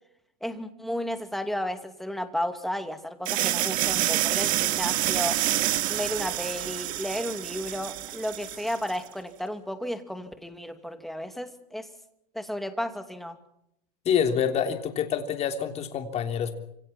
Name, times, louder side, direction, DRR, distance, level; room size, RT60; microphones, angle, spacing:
voice 1, 0.4-5.4 5.9-11.9 12.3-13.4, equal, ahead, 7 dB, 2.5 m, -33 dB
sound 1, 3.3-9.0, right 15 dB, 40° right, 1.9 m, -27 dB
voice 2, 14.0-16.5, left 8 dB, 30° left, 6 dB, 3.3 m, -26 dB
28.5 x 26.5 x 4.4 m, 0.75 s
hypercardioid pair, 120°, 20 cm